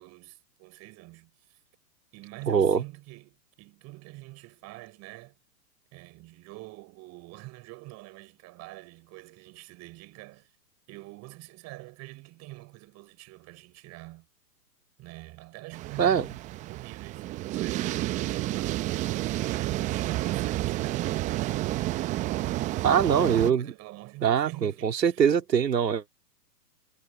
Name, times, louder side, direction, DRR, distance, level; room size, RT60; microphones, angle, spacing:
voice 1, 0.0-1.6 2.1-5.4 5.9-10.5 10.9-14.3 15.0-19.2 19.4-22.0 22.9-25.3, right 21 dB, 30° right, 5.5 m, -46 dB
voice 2, 2.5-2.8 16.0-16.3 22.8-23.7 24.2-26.1, right 7 dB, 80° right, 2.8 m, -23 dB
sound 1, 15.7-23.5, right 16 dB, 15° right, 0.6 m, -30 dB
hypercardioid pair, 125°, 50 cm